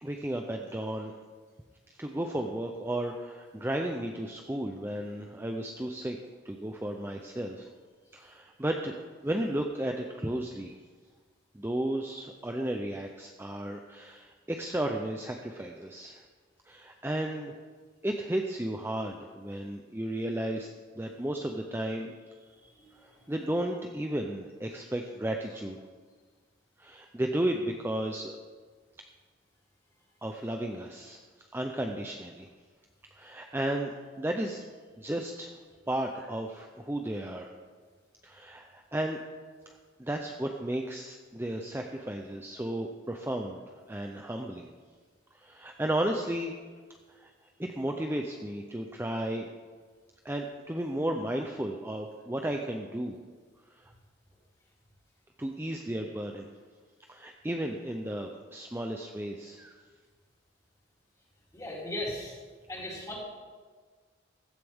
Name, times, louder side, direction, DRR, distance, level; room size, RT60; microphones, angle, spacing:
voice 1, 0.0-1.1 1.9-6.2 6.4-7.7 8.1-10.8 11.5-16.2 16.7-17.6 18.0-20.7 20.9-22.2 22.6-25.8 26.8-28.3 30.2-32.5 33.1-34.6 35.0-35.6 35.9-37.5 38.2-39.2 39.7-44.7 45.3-46.5 47.1-47.3 47.6-49.5 50.2-53.2 53.7-53.9 55.4-56.5 57.1-59.8, right 1 dB, 10° right, 3 dB, 0.6 m, -34 dB
voice 2, 22.8-23.3 61.5-62.4 62.7-63.2, left 1 dB, 15° left, -5 dB, 3.3 m, -38 dB
15.5 x 13.0 x 3.6 m, 1.5 s
head